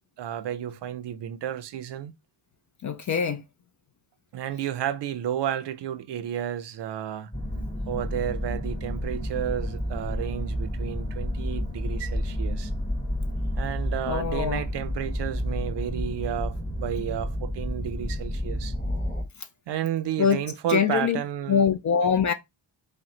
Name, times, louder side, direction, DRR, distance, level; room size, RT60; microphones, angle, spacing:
voice 1, 0.2-2.1 4.3-7.3 7.9-12.7 13.6-18.7 19.7-21.7, right 10 dB, 70° right, 0.5 m, -32 dB
voice 2, 2.8-3.4 14.1-14.6 20.2-20.4 20.7-21.2 21.5-22.3, left 7 dB, 45° left, 0.4 m, -23 dB
sound 1, 7.3-19.2, equal, 15° left, 1.0 m, -30 dB
4.2 x 2.1 x 3.8 m
wide cardioid pair, 115°, 44 cm